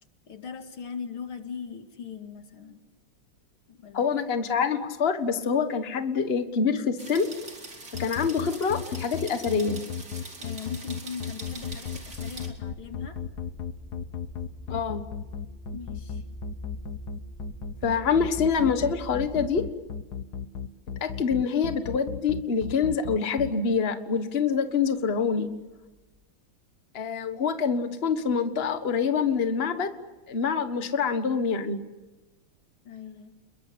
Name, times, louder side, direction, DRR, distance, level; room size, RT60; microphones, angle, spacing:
voice 1, 0.3-2.8 3.7-4.1 10.1-13.2 15.7-16.2 32.8-33.3, left 6 dB, 85° left, 6 dB, 3.1 m, -40 dB
voice 2, 3.9-7.3 8.0-9.8 14.7-15.0 17.8-19.6 21.0-25.5 26.9-29.9 30.3-31.8, left 6 dB, 30° left, 9 dB, 1.6 m, -26 dB
sound 1, 7.0-12.5, right 3 dB, 45° right, 3.9 m, -43 dB
sound 2, 7.9-23.5, left 8 dB, 55° left, 1.6 m, -34 dB
sound 3, 11.4-20.2 20.9-21.3 21.9-22.0 25.6-26.2, right 1 dB, 5° right, 3.4 m, -44 dB
28.5 x 22.0 x 8.7 m, 1.2 s
omnidirectional pair, 2.2 m